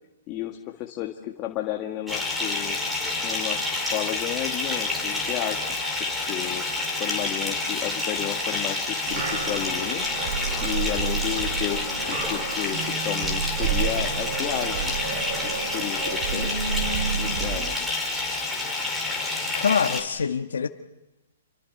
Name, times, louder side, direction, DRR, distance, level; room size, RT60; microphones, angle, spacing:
voice 1, 0.3-2.8 3.2-5.8 6.3-6.7 7.0-10.1 10.6-14.9 15.7-16.6 17.2-17.8, left 13 dB, 30° left, 2 dB, 1.8 m, -32 dB
Bathtub (filling or washing) / Fill (with liquid), 2.1-20.0, left 3 dB, 5° right, 5.0 m, -28 dB
sound 1, 9.0-17.7, right 7 dB, 50° right, 3.0 m, -30 dB
voice 2, 19.5-20.7, left 6 dB, 90° left, 4 dB, 1.4 m, -24 dB
28.5 x 24.5 x 6.8 m, 0.99 s
hypercardioid pair, 155°, 0 cm